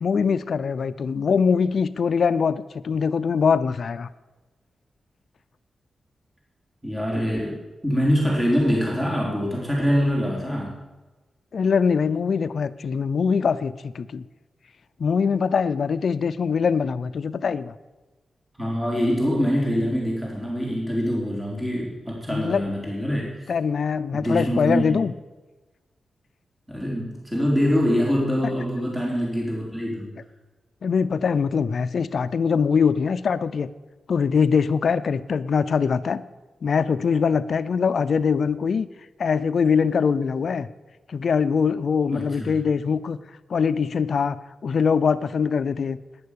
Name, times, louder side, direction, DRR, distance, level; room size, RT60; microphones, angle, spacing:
voice 1, 0.0-4.1 11.5-14.2 15.0-17.7 22.3-22.7 23.5-25.1 30.8-33.7 34.1-36.2 36.6-38.9 39.2-40.7 41.1-43.2 43.5-44.4 44.6-46.0, left 6 dB, 65° left, 13 dB, 0.6 m, -22 dB
voice 2, 6.8-10.7 18.6-23.4 24.1-25.0 26.7-30.1 42.1-42.6, equal, 10° right, -3 dB, 4.2 m, -24 dB
11.5 x 10.5 x 8.5 m, 1.2 s
cardioid pair, 75°, 0 cm